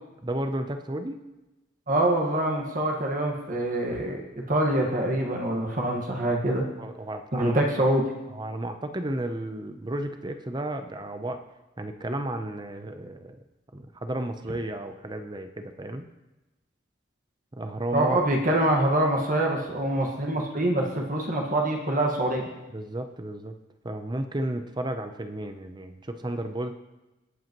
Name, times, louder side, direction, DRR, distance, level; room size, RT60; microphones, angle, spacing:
voice 1, 0.2-1.2 6.8-7.6 8.3-11.4 11.8-13.4 13.7-16.1 17.5-18.2 22.7-23.6 23.8-26.7, right 1 dB, 20° right, 7 dB, 0.6 m, -33 dB
voice 2, 1.9-6.6 7.3-8.0 17.9-22.4, right 1 dB, 45° right, 0 dB, 1.5 m, -25 dB
18.5 x 8.0 x 3.0 m, 1.0 s
head